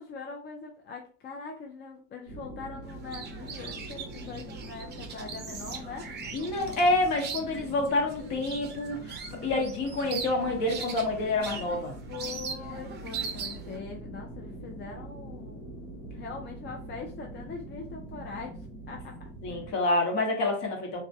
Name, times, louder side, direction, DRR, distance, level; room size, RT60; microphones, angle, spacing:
voice 1, 0.0-6.1 12.1-15.6 16.2-18.6 18.9-19.2, left 5 dB, 30° left, 1 dB, 0.4 m, -42 dB
sound 1, 2.3-19.7, right 1 dB, 85° left, 1.0 m, -43 dB
sound 2, 2.9-13.8, right 6 dB, 30° right, 0.5 m, -41 dB
voice 2, 6.3-11.9 19.4-21.0, left 2 dB, 55° left, 1 dB, 1.1 m, -28 dB
2.3 x 2.1 x 2.7 m, 0.42 s
supercardioid pair, 95°, 34 cm